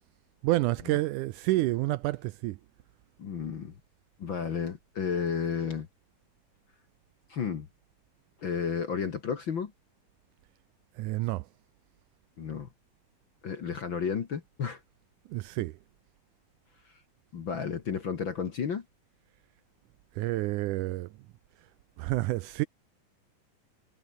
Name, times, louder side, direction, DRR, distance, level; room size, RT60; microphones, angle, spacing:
voice 1, 0.4-2.6 11.0-11.5 15.3-15.7 20.2-21.1 22.0-22.7, right 18 dB, 80° right, 1.8 m, -29 dB
voice 2, 3.2-3.7 4.2-5.9 7.3-7.7 8.4-9.7 12.4-12.7 13.4-14.8 17.3-18.8, left 6 dB, 50° left, 1.6 m, -32 dB
omnidirectional pair, 4.1 m